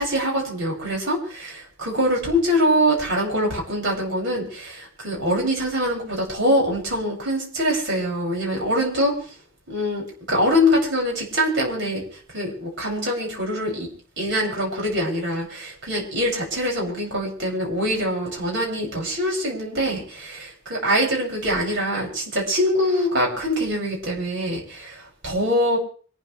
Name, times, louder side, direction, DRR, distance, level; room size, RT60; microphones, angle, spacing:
voice 1, 0.0-9.3 9.7-13.9 14.2-25.8, equal, 65° right, -2 dB, 7.4 m, -24 dB
26.0 x 13.0 x 3.5 m, 0.43 s
head